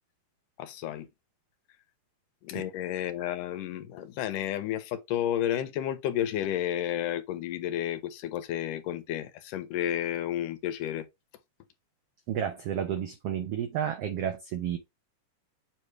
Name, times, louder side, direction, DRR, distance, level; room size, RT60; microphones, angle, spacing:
voice 1, 0.6-1.1 2.4-11.1, left 11 dB, 80° left, 2.4 m, -31 dB
voice 2, 12.3-14.8, right 9 dB, 80° right, 1.3 m, -31 dB
7.5 x 3.2 x 4.5 m
omnidirectional pair, 3.8 m